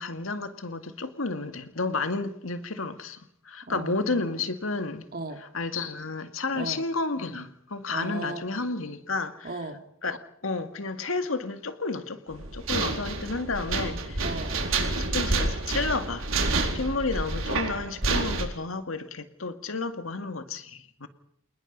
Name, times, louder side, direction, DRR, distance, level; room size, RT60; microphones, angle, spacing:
voice 1, 0.0-5.0 5.5-9.5 10.0-10.2 10.4-14.3 14.9-16.3 16.6-21.1, left 3 dB, 85° left, 2.1 m, -31 dB
voice 2, 3.7-4.4 5.1-5.4 6.5-6.8 7.9-8.4 9.4-9.8 14.2-14.6, right 2 dB, 50° right, 3.0 m, -36 dB
sound 1, 12.3-18.4, right 3 dB, 80° right, 4.3 m, -28 dB
27.5 x 20.0 x 5.5 m
head